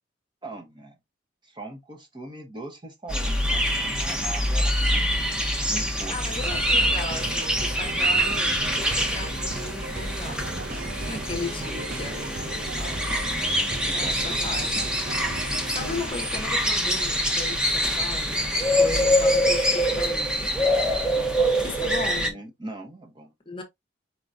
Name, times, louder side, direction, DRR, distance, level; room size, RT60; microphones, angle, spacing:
voice 1, 0.4-1.0 1.4-5.0 5.7-6.2 10.9-11.3 13.8-14.1 19.0-19.1 21.1-23.3, right 2 dB, 25° right, 1.1 m, -40 dB
sound 1, 3.1-22.3, equal, 5° right, 0.9 m, -25 dB
voice 2, 6.1-10.7 11.0-13.6 13.9-15.0 15.3-20.8 21.6-22.4 23.5-23.6, left 3 dB, 30° left, 0.9 m, -37 dB
sound 2, 6.5-16.1, right 3 dB, 50° right, 0.6 m, -37 dB
4.7 x 3.8 x 2.6 m
head